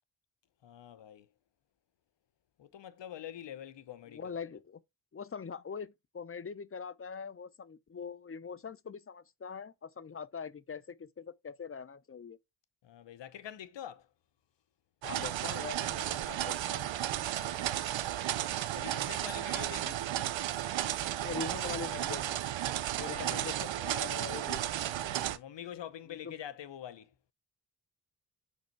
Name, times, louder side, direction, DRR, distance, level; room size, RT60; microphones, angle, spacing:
voice 1, 0.6-1.3 2.6-4.4 12.8-14.1 17.3-18.3 18.7-20.0 23.0-23.6 25.0-27.1, left 10 dB, 65° left, 0.9 m, -46 dB
voice 2, 4.1-4.8 5.1-12.4 15.0-16.9 21.2-22.4 23.0-24.6 26.1-26.3, left 6 dB, 30° left, 0.6 m, -43 dB
sound 1, 15.0-25.4, right 12 dB, 75° right, 0.7 m, -34 dB
5.3 x 4.2 x 4.4 m
cardioid pair, 45°, 46 cm